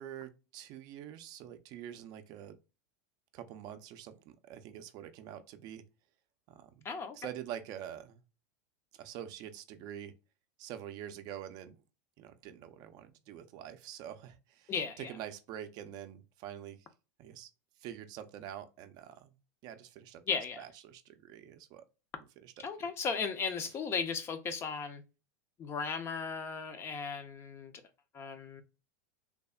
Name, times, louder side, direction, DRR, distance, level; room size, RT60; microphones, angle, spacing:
voice 1, 0.0-2.6 3.3-5.8 6.5-6.9 7.1-8.2 8.9-10.1 10.6-11.8 12.2-16.9 17.2-17.5 17.8-19.4 19.6-21.8 22.2-22.9 23.6-23.7, right 10 dB, 45° right, 0.4 m, -46 dB
voice 2, 6.8-7.2 14.7-15.1 20.3-20.6 22.6-25.0 25.6-27.7 28.1-28.6, left 5 dB, 25° left, 0.4 m, -36 dB
3.3 x 2.0 x 2.2 m
supercardioid pair, 130°, 9 cm